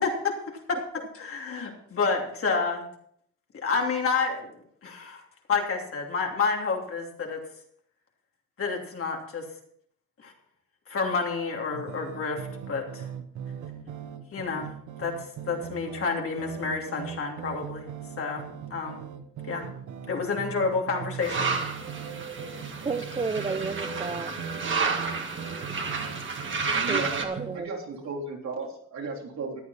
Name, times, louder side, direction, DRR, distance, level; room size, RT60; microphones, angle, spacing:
voice 1, 0.0-2.9 3.5-4.5 4.8-5.2 5.5-7.4 8.6-9.5 10.2-10.3 10.9-13.1 14.3-14.7 15.0-17.9 18.2-19.0 19.5-19.7 20.1-21.5, left 4 dB, 45° left, 1 dB, 2.9 m, -29 dB
sound 1, 11.7-27.6, right 8 dB, 85° right, 1.3 m, -40 dB
sound 2, 21.2-27.2, right 4 dB, 40° right, 2.1 m, -31 dB
voice 2, 22.8-24.3 26.9-27.7, right 4 dB, 20° right, 8 dB, 0.7 m, -31 dB
voice 3, 26.6-27.2 27.5-29.6, right 4 dB, 65° right, 0 dB, 3.7 m, -35 dB
14.0 x 9.6 x 4.3 m, 0.66 s
cardioid pair, 90°, 30 cm